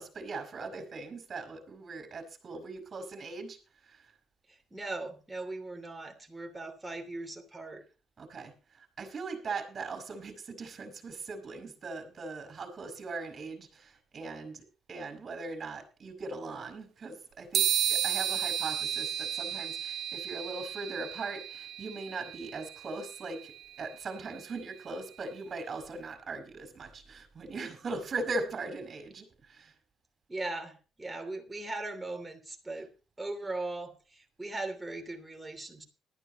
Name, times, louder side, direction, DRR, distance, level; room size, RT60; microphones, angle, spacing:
voice 1, 0.0-3.6 3.8-4.1 8.2-23.5 23.8-29.7, right 3 dB, 35° right, 8 dB, 4.9 m, -40 dB
voice 2, 4.5-7.8 30.3-32.9 33.2-35.8, right 2 dB, 10° right, 4 dB, 2.9 m, -39 dB
sound 1, 17.5-25.2, right 10 dB, 70° right, 1.1 m, -34 dB
19.0 x 12.5 x 3.0 m, 0.33 s
cardioid pair, 140°, 0 cm